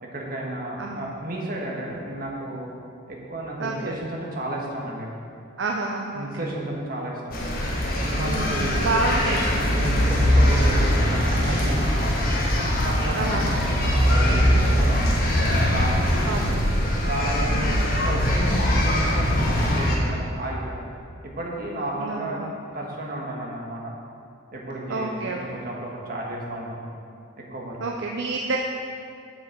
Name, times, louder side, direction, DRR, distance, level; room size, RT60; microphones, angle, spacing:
voice 1, 0.0-2.7 3.1-5.1 6.1-7.5 7.9-12.2 12.8-16.6 17.0-20.9 21.2-22.4 22.7-23.9 24.5-26.8 27.4-27.8, right 1 dB, 50° right, -2 dB, 1.5 m, -32 dB
voice 2, 0.8-1.1 3.6-4.0 5.6-6.5 8.2-9.4 9.7-10.2 13.1-13.6 16.3-16.8 17.5-17.9 22.0-22.5 24.9-25.6 27.8-28.6, right 3 dB, 70° right, 1 dB, 0.6 m, -29 dB
sound 1, 7.3-20.0, equal, 50° left, 1.4 m, -22 dB
8.0 x 7.2 x 5.4 m, 2.4 s
head